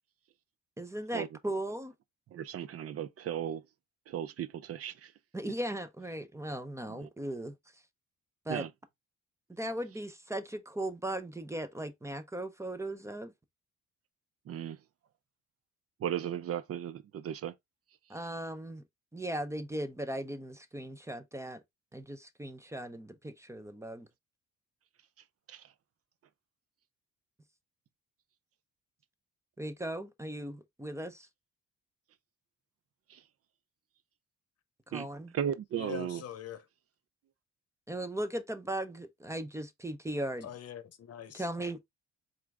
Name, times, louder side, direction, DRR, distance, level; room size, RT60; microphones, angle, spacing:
voice 1, 0.8-1.9 5.3-7.5 8.5-8.7 9.5-13.3 18.1-18.8 19.1-21.6 21.9-24.1 29.6-31.3 34.9-35.3 37.9-40.5 41.3-41.8, right 1 dB, 10° right, 0.6 m, -38 dB
voice 2, 2.3-3.6 4.1-5.1 6.9-7.1 8.5-8.7 14.5-14.8 16.0-17.5 25.5-25.6 33.1-33.2 34.9-35.1 35.3-36.2, right 10 dB, 50° right, 0.5 m, -36 dB
voice 3, 35.8-36.7 40.4-41.4, left 8 dB, 55° left, 0.8 m, -43 dB
4.3 x 2.6 x 3.4 m
cardioid pair, 90°, 30 cm